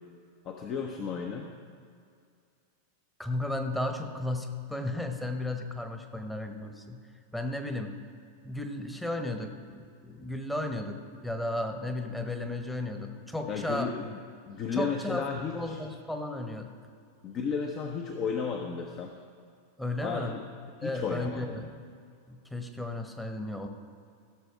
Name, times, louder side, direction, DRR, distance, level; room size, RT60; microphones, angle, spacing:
voice 1, 0.4-1.5 13.5-14.2 14.5-15.8 17.2-19.2 20.0-20.5 20.8-21.5, left 6 dB, 35° left, 3 dB, 0.8 m, -33 dB
voice 2, 3.2-7.0 7.3-8.0 8.4-14.0 14.7-15.2 15.5-16.7 19.8-20.4 20.8-21.8 22.3-23.7, left 1 dB, 5° left, 5 dB, 1.0 m, -34 dB
16.0 x 6.9 x 4.7 m, 2.3 s
figure-of-eight pair, 90°, 0 cm